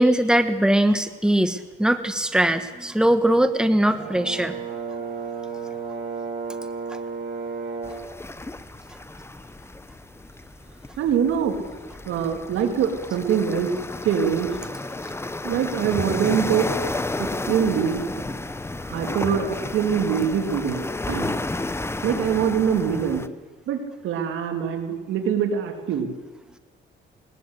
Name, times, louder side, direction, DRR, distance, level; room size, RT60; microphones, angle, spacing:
voice 1, 0.0-4.6, right 1 dB, 5° right, 9 dB, 1.4 m, -20 dB
Brass instrument, 3.9-8.1, right 5 dB, 55° right, 8.0 m, -32 dB
sound 1, 7.8-23.3, left 2 dB, 10° left, 1.0 m, -32 dB
voice 2, 11.0-11.6 12.1-13.7 14.0-14.5 15.4-16.7 17.2-18.0 18.9-20.8 21.1-21.3 22.0-23.2 23.7-26.1, right 8 dB, 85° right, 5 dB, 3.0 m, -24 dB
20.5 x 20.5 x 8.2 m, 1.2 s
cardioid pair, 90°, 20 cm